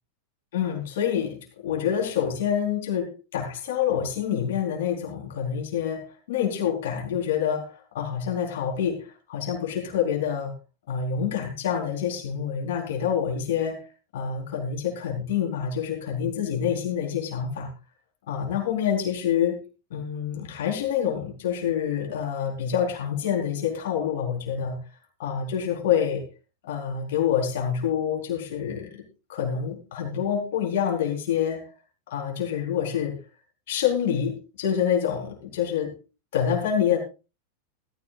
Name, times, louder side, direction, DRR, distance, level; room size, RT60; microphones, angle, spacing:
voice 1, 0.5-10.5 10.9-17.7 18.3-19.6 19.9-24.8 25.2-26.2 26.6-29.0 29.3-31.7 32.1-33.2 33.7-35.9 36.3-37.0, left 8 dB, 55° left, 1 dB, 4.3 m, -27 dB
17.0 x 14.5 x 2.5 m, 0.30 s
figure-of-eight pair, 90°, 0 cm